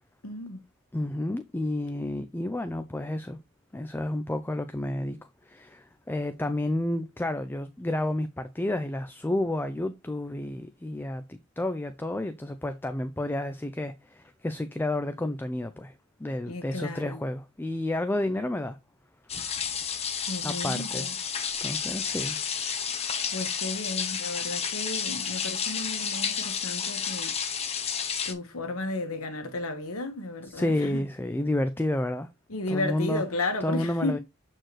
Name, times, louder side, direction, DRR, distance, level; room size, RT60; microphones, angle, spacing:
voice 1, 0.2-0.6 16.5-17.2 20.3-21.1 23.3-27.4 28.2-31.0 32.5-34.2, left 2 dB, 70° left, 1.4 m, -33 dB
voice 2, 0.9-3.4 3.7-5.2 5.4-18.8 20.4-21.1 21.6-22.4 30.4-32.3 32.7-33.2 33.6-34.2, left 1 dB, 10° left, 0.4 m, -30 dB
sound 1, 19.3-28.3, left 7 dB, 30° left, 0.9 m, -31 dB
7.6 x 4.4 x 3.1 m
head